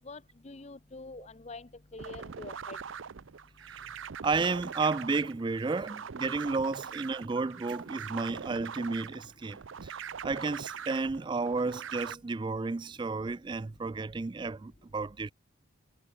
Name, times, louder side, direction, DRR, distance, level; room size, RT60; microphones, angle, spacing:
voice 1, 0.0-2.8, left 3 dB, 35° left, 0.7 m, -46 dB
sound 1, 2.0-12.1, right 7 dB, 75° right, 0.6 m, -42 dB
voice 2, 4.2-9.6 9.8-9.9 10.2-15.3, right 4 dB, 25° right, 0.3 m, -32 dB
sound 2, 7.3-11.2, left 1 dB, 5° left, 5.4 m, -63 dB
head